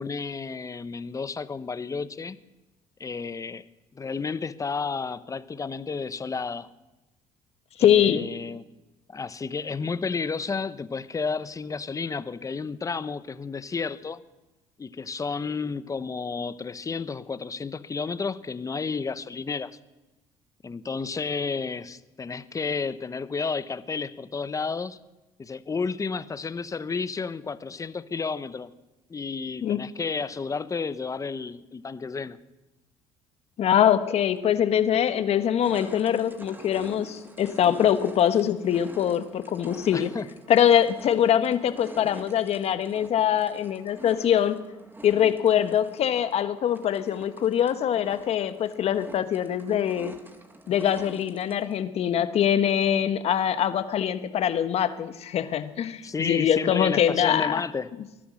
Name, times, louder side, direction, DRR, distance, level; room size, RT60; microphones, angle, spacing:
voice 1, 0.0-2.4 3.0-3.6 3.9-6.7 7.8-8.6 9.1-14.2 14.8-19.7 20.6-25.0 25.4-28.7 29.1-32.4 39.9-40.3 56.0-57.9, left 5 dB, 25° left, 14 dB, 0.9 m, -31 dB
voice 2, 7.8-8.3 29.6-29.8 33.6-40.1 40.5-44.6 45.0-50.2 50.7-57.6, left 9 dB, 55° left, 11 dB, 1.3 m, -23 dB
sound 1, 34.4-34.5 35.0-51.8, right 2 dB, 15° right, 2.1 m, -47 dB
20.0 x 11.5 x 6.4 m, 1.0 s
supercardioid pair, 75°, 13 cm